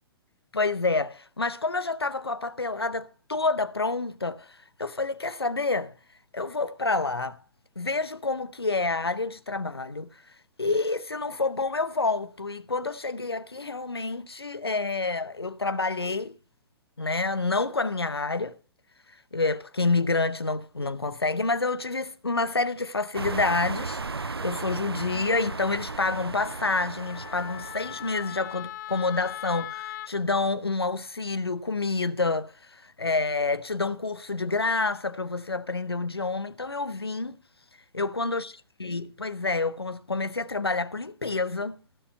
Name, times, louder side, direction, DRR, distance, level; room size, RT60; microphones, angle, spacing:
voice 1, 0.5-5.9 6.3-7.4 7.8-10.1 10.6-16.3 17.0-18.6 19.3-37.4 37.9-38.5 38.8-41.8, left 3 dB, 90° left, 0.8 m, -28 dB
sound 1, 23.1-28.5, right 4 dB, 90° right, 0.5 m, -36 dB
Wind instrument woodwind instrument, 24.9-30.1, left 14 dB, 50° left, 0.5 m, -41 dB
15.5 x 6.8 x 5.4 m
figure-of-eight pair, 115°, 13 cm